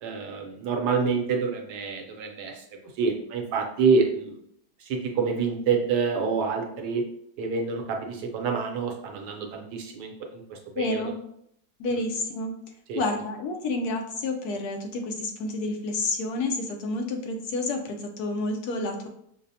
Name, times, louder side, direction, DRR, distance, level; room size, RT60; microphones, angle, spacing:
voice 1, 0.0-2.6 3.0-4.4 4.8-7.0 7.4-11.0 12.9-13.0, right 5 dB, 75° right, 2 dB, 1.2 m, -27 dB
voice 2, 10.8-11.1 11.8-12.5 12.9-19.1, left 2 dB, 70° left, 3 dB, 1.0 m, -29 dB
5.7 x 2.0 x 2.6 m, 0.71 s
omnidirectional pair, 1.8 m